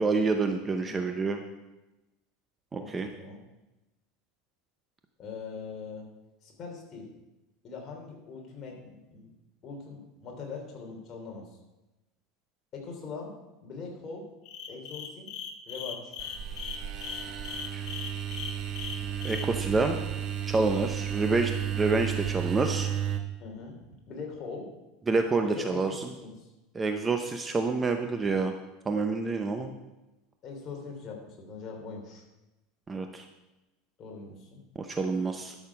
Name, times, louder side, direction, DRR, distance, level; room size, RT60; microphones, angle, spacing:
voice 1, 0.0-1.4 2.7-3.1 17.7-17.8 19.2-20.0 20.5-22.9 25.1-25.9 26.7-28.5 28.9-29.7 32.9-33.2 34.8-35.5, right 3 dB, 15° right, 6 dB, 0.7 m, -28 dB
voice 2, 0.8-1.2 2.8-3.4 5.2-6.1 6.4-7.1 7.6-9.3 9.6-11.4 12.7-13.3 13.6-14.3 14.7-15.3 15.7-16.1 23.4-24.7 25.5-26.5 30.4-32.2 34.0-34.6, left 4 dB, 35° left, 0 dB, 3.0 m, -42 dB
sound 1, 14.4-19.5, left 7 dB, 50° left, 1.2 m, -39 dB
sound 2, 16.2-23.2, right 9 dB, 35° right, 1.1 m, -33 dB
12.0 x 6.5 x 5.9 m, 1.0 s
supercardioid pair, 145°, 0 cm